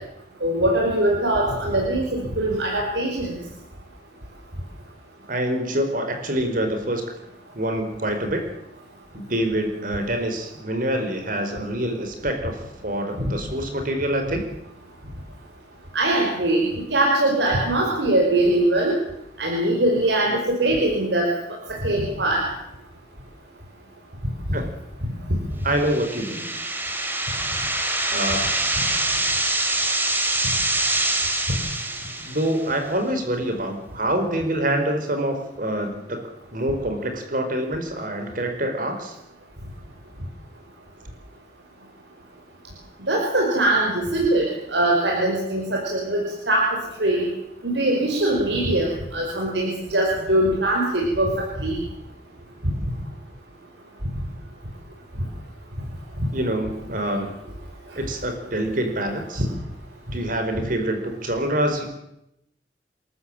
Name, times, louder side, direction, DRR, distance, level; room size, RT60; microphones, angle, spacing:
voice 1, 0.4-3.4 15.9-19.0 19.4-21.3 21.8-22.4 25.3-25.4 43.1-46.7 47.0-47.3 47.6-51.3 51.6-51.8, right 1 dB, 90° right, -2 dB, 5.4 m, -22 dB
voice 2, 5.3-7.0 7.5-8.4 9.1-14.5 24.5-24.7 25.6-26.5 28.1-28.4 32.2-36.2 36.5-39.2 56.3-57.4 58.0-59.4 60.1-61.9, right 1 dB, 50° right, 5 dB, 4.6 m, -26 dB
sound 1, 25.7-32.7, right 2 dB, 10° right, 3.3 m, -25 dB
27.5 x 14.0 x 8.9 m, 0.83 s
head